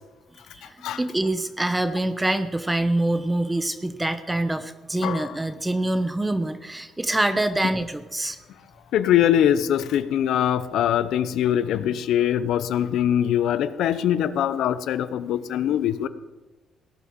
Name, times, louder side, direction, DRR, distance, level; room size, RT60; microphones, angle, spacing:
voice 1, 0.5-8.4, right 1 dB, 10° right, 10 dB, 1.0 m, -25 dB
voice 2, 5.0-5.3 8.9-16.1, left 10 dB, 80° left, 14 dB, 0.8 m, -22 dB
17.5 x 8.9 x 7.2 m, 1.1 s
cardioid pair, 90°, 0 cm